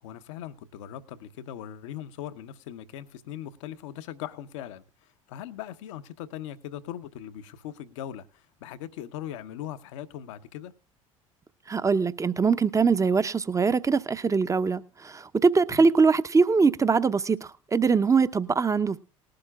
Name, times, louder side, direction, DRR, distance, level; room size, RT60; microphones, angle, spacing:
voice 1, 0.0-10.7 15.7-15.9, left 11 dB, 65° left, 1.0 m, -40 dB
voice 2, 11.7-19.0, right 5 dB, 20° right, 0.8 m, -22 dB
19.5 x 11.5 x 2.4 m
figure-of-eight pair, 65°, 17 cm